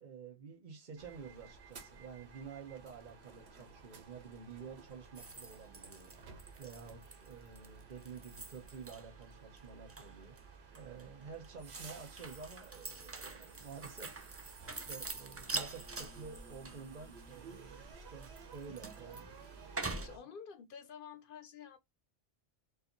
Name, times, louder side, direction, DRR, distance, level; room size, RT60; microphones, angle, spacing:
voice 1, 0.0-19.3 19.9-20.1, right 5 dB, 50° right, 0.9 m, -50 dB
sound 1, 1.0-20.2, right 5 dB, 80° right, 1.2 m, -54 dB
sound 2, 5.2-9.2 9.5-10.4 10.7-20.1, right 3 dB, 25° right, 0.3 m, -45 dB
voice 2, 20.0-21.8, left 7 dB, 60° left, 0.7 m, -50 dB
4.6 x 2.5 x 3.0 m
omnidirectional pair, 1.1 m